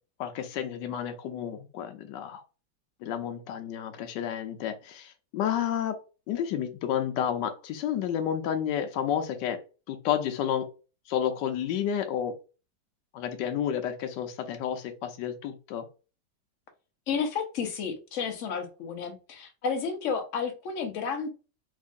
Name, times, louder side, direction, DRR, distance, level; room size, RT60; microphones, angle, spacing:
voice 1, 0.2-2.4 3.0-6.0 6.3-9.6 9.9-10.7 11.1-12.3 13.1-15.9, left 9 dB, 80° left, 1.2 m, -30 dB
voice 2, 17.1-21.3, left 6 dB, 55° left, 0.9 m, -31 dB
3.6 x 3.1 x 2.5 m
omnidirectional pair, 1.9 m